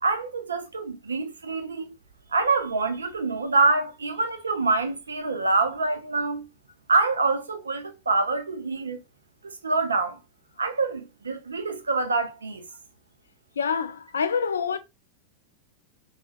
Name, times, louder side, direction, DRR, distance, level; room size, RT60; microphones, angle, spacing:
voice 1, 0.0-1.9 2.3-6.5 6.9-9.0 9.6-10.2 10.6-12.6, right 3 dB, 75° right, 0.5 m, -25 dB
voice 2, 13.6-14.8, left 6 dB, 70° left, 0.3 m, -26 dB
3.3 x 2.0 x 2.3 m
figure-of-eight pair, 90°, 0 cm